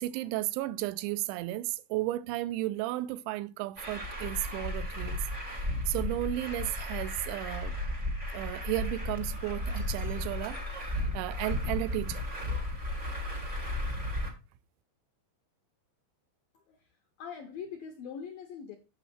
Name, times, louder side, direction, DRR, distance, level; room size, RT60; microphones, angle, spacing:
voice 1, 0.0-5.2 5.9-7.8 8.3-12.2, right 16 dB, 85° right, 2.8 m, -34 dB
Truck, 3.8-14.3, left 1 dB, 55° right, 0.5 m, -34 dB
voice 2, 16.5-18.8, left 7 dB, 80° left, 2.0 m, -43 dB
9.0 x 6.6 x 4.3 m
omnidirectional pair, 5.5 m